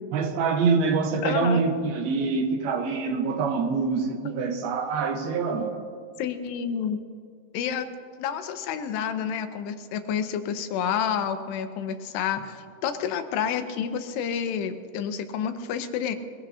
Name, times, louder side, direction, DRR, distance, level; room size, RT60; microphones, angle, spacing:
voice 1, 0.1-5.8, right 4 dB, 70° right, 3.0 m, -25 dB
voice 2, 1.2-1.6 6.2-7.0 7.5-7.9 8.2-16.2, left 8 dB, 85° left, 3.0 m, -29 dB
22.0 x 21.5 x 2.8 m
omnidirectional pair, 4.7 m